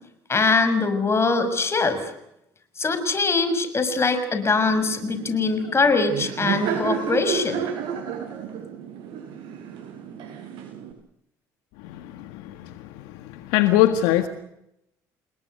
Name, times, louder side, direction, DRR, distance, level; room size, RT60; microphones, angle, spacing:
voice 1, 0.3-2.1 2.8-7.7, left 4 dB, 30° left, 6.1 m, -22 dB
Laughter, 4.6-10.9, right 7 dB, 70° right, 7.2 m, -32 dB
voice 2, 11.8-14.3, left 13 dB, 80° left, 1.7 m, -23 dB
30.0 x 20.5 x 6.6 m
hypercardioid pair, 65°, 8 cm